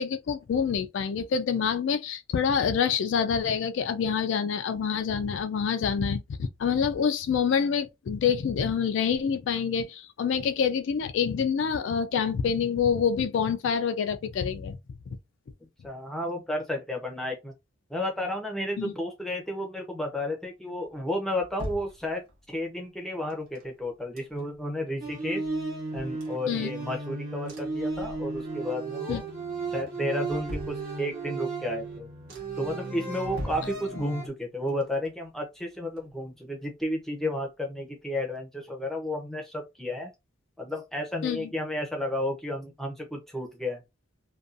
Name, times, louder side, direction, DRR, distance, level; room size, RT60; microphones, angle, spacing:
voice 1, 0.0-14.8 15.1-15.2 18.8-18.9 26.5-26.7 29.1-29.2 41.2-41.5, left 6 dB, 65° left, 0.3 m, -27 dB
voice 2, 15.8-17.5 17.9-25.4 25.9-29.2 29.7-32.1 32.6-40.1 40.6-43.8, left 1 dB, ahead, 0.6 m, -32 dB
sound 1, 20.8-22.6 23.3-24.7 25.1-25.2 25.4-27.0 27.5-28.6 29.0-29.5 29.9-31.4 31.8-31.9 32.3-32.8 33.2-34.4 34.7-36.5 36.8-36.9, equal, 85° right, 1.0 m, -44 dB
sound 2, 25.0-34.3, right 3 dB, 45° right, 0.9 m, -35 dB
2.6 x 2.2 x 2.4 m
head